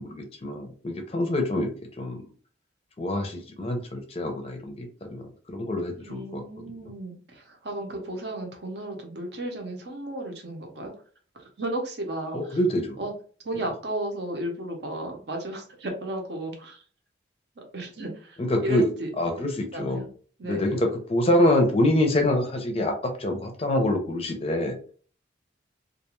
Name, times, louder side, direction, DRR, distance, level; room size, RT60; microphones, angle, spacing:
voice 1, 0.0-1.7 2.0-2.2 3.0-6.4 12.3-13.0 18.4-18.9 19.2-20.0 20.4-24.8, left 1 dB, 30° left, 4 dB, 0.5 m, -25 dB
voice 2, 6.0-10.9 11.6-12.6 13.0-13.1 13.4-16.8 17.6-19.5 19.7-20.1 20.4-20.7, right 1 dB, 60° right, 3 dB, 0.7 m, -34 dB
2.4 x 2.2 x 2.9 m, 0.42 s
head